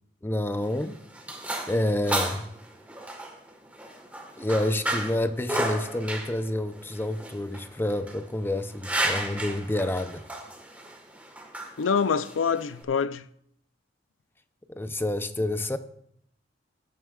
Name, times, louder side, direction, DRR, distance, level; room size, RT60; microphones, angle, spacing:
voice 1, 0.2-1.0 1.7-2.5 4.4-10.2 14.7-15.8, left 1 dB, 10° left, 0.6 m, -28 dB
sound 1, 0.5-12.8, right 1 dB, 10° right, 1.4 m, -34 dB
voice 2, 11.8-13.2, left 6 dB, 85° left, 0.5 m, -25 dB
19.0 x 9.2 x 2.4 m
head